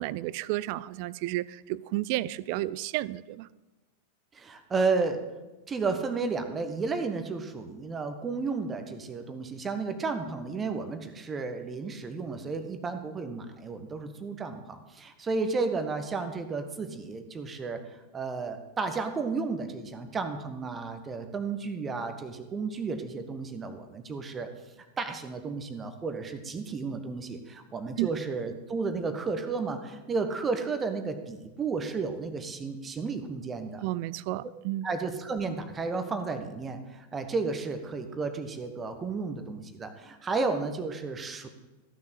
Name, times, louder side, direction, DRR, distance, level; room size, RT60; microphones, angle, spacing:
voice 1, 0.0-3.5 28.0-28.1 33.8-34.9, right 16 dB, 45° right, 20 dB, 0.4 m, -32 dB
voice 2, 4.3-5.2 5.7-24.5 25.0-33.8 34.8-41.5, right 4 dB, 20° right, 8 dB, 1.3 m, -32 dB
15.0 x 7.1 x 8.2 m, 1.1 s
figure-of-eight pair, 90°, 0 cm